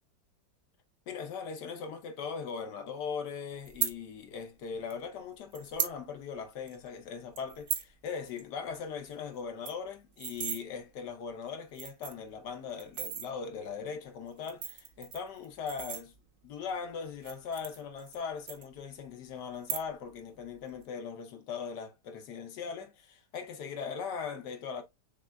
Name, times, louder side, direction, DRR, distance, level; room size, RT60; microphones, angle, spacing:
voice 1, 1.1-16.1 16.4-24.8, left 6 dB, 75° left, 1.4 m, -39 dB
sound 1, 3.6-3.9 4.9-5.0 5.5-6.0 6.3-6.4 6.7-6.9 7.4-7.9 8.3-8.4 8.7-8.8 9.1-9.2 9.5-10.6 11.3-11.4 11.7-12.3 12.8-13.3 14.3-16.5 17.1-18.2 18.5-19.1 19.5-20.1 20.4-20.8, right 8 dB, 60° right, 1.0 m, -36 dB
6.2 x 3.3 x 2.3 m
omnidirectional pair, 1.9 m